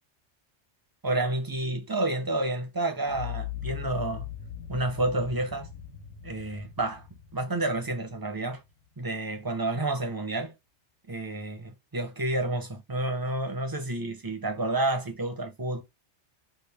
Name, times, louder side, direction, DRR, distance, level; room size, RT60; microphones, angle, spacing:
voice 1, 1.0-4.3 4.7-5.7 6.2-7.1 7.3-8.6 9.0-10.5 11.1-15.8, right 2 dB, 25° right, 0.5 m, -30 dB
sound 1, 3.0-9.1, left 11 dB, 80° left, 1.3 m, -40 dB
3.1 x 2.4 x 3.3 m
omnidirectional pair, 1.2 m